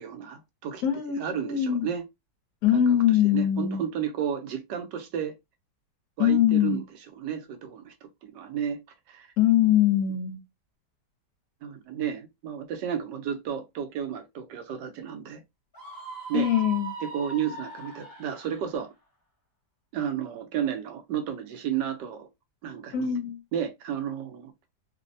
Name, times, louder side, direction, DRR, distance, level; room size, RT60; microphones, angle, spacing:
voice 1, 0.0-0.8 1.2-2.0 2.7-2.8 3.3-5.3 6.2-6.8 7.2-7.9 8.2-8.8 9.1-9.3 11.6-15.4 16.3-16.5 17.0-18.9 19.9-22.3 22.6-23.2 23.5-24.5, right 9 dB, 90° right, 1.3 m, -32 dB
voice 2, 0.8-1.9 2.6-3.8 6.2-6.8 9.4-10.4 16.3-16.9 22.9-23.4, left 10 dB, 65° left, 1.1 m, -22 dB
Screaming, 15.7-18.7, right 4 dB, 20° left, 0.5 m, -40 dB
3.3 x 2.0 x 2.6 m
omnidirectional pair, 1.8 m